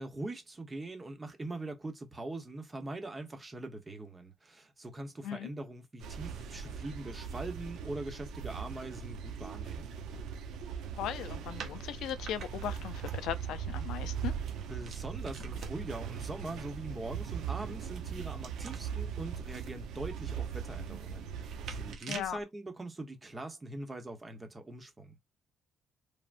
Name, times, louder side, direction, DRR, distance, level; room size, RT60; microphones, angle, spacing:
voice 1, 0.0-9.9 14.7-25.2, right 2 dB, 20° right, 0.9 m, -42 dB
sound 1, 6.0-22.0, right 7 dB, 85° right, 0.6 m, -40 dB
voice 2, 10.9-14.3 22.1-22.4, left 10 dB, 80° left, 0.4 m, -38 dB
sound 2, 11.6-16.1 17.5-22.4, right 4 dB, 60° right, 0.8 m, -49 dB
3.4 x 2.1 x 2.5 m
cardioid pair, 135°, 0 cm